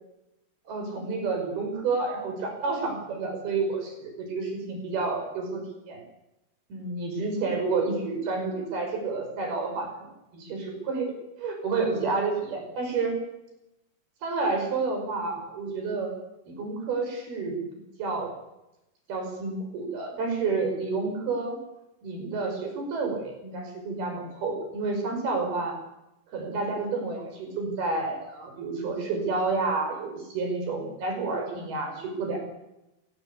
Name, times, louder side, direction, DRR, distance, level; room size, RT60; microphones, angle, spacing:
voice 1, 0.7-6.0 6.7-13.1 14.2-16.1 16.5-17.6 18.0-18.3 19.1-21.6 22.0-25.7 26.3-32.4, right 3 dB, 70° right, 3 dB, 7.4 m, -30 dB
28.5 x 17.5 x 8.5 m, 0.91 s
omnidirectional pair, 4.6 m